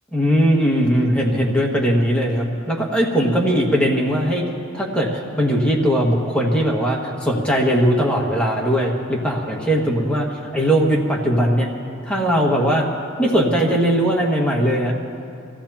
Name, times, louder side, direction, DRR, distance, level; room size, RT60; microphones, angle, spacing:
voice 1, 0.1-4.4 4.7-11.7 12.0-12.9 13.2-14.9, equal, 5° left, -2 dB, 1.8 m, -19 dB
24.5 x 15.5 x 2.9 m, 2.7 s
head